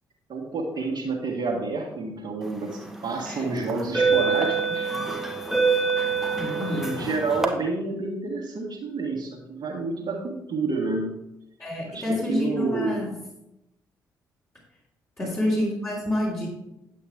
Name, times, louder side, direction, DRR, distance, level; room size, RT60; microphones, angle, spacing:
voice 1, 0.3-5.1 6.5-11.2 11.9-13.0 15.2-15.3, right 3 dB, 45° right, -3 dB, 1.7 m, -29 dB
sound 1, 2.7-2.9 3.7-7.5, right 4 dB, 5° right, 1.4 m, -25 dB
voice 2, 3.2-3.6 6.4-7.0 11.6-13.2 15.2-16.5, left 1 dB, 25° left, -7 dB, 3.2 m, -28 dB
8.7 x 8.3 x 3.6 m, 0.86 s
figure-of-eight pair, 40°, 10 cm